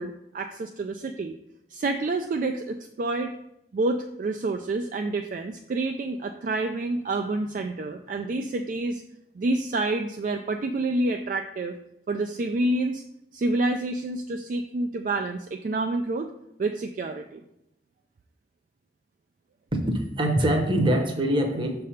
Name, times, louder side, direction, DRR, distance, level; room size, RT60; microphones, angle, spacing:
voice 1, 0.0-1.3 1.7-3.4 3.7-9.0 9.3-11.8 12.1-13.0 13.3-16.3 16.6-17.4, right 2 dB, 45° right, 5 dB, 0.3 m, -28 dB
voice 2, 19.7-21.8, right 1 dB, 30° right, 3 dB, 0.8 m, -24 dB
6.6 x 3.3 x 5.6 m, 0.82 s
head